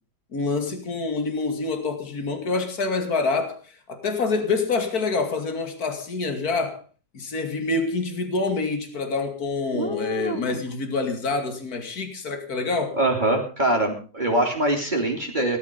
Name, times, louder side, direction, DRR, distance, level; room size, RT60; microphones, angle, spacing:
voice 1, 0.3-6.8 7.1-13.0, left 3 dB, 65° left, 2.9 m, -26 dB
voice 2, 9.7-10.6 12.9-15.6, right 1 dB, 30° right, 3.1 m, -24 dB
18.0 x 12.5 x 5.3 m
omnidirectional pair, 1.7 m